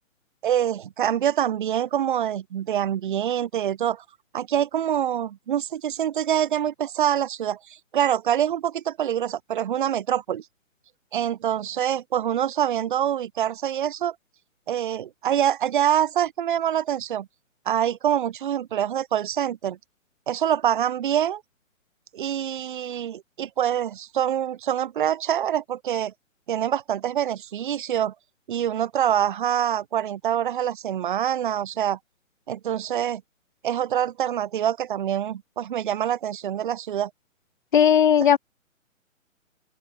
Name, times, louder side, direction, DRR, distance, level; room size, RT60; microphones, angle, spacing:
voice 1, 0.4-4.0 4.3-10.4 11.1-14.2 14.7-17.3 17.7-19.8 20.3-21.4 22.1-26.1 26.5-28.1 28.5-32.0 32.5-33.2 33.6-37.1, right 10 dB, 40° right, 1.7 m, -25 dB
voice 2, 37.7-38.4, left 9 dB, 40° left, 0.8 m, -16 dB
open air
figure-of-eight pair, 130°, 40 cm